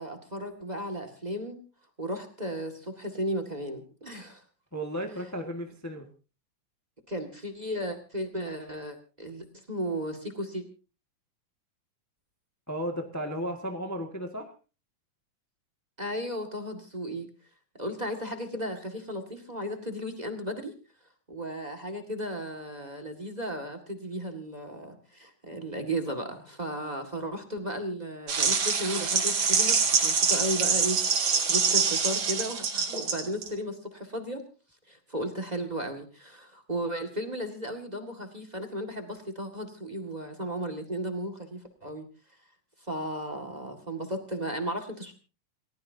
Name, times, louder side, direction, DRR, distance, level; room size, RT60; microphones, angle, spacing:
voice 1, 0.0-1.6 2.0-4.4 7.1-10.6 16.0-17.3 17.8-20.7 21.3-34.4 34.9-42.1 42.8-45.1, equal, 20° right, 6 dB, 1.4 m, -35 dB
voice 2, 4.7-6.1 12.7-14.5, equal, 20° left, 3 dB, 0.4 m, -34 dB
sound 1, 28.3-33.5, right 5 dB, 40° right, 2.5 m, -25 dB
29.0 x 16.0 x 2.8 m, 0.35 s
omnidirectional pair, 3.7 m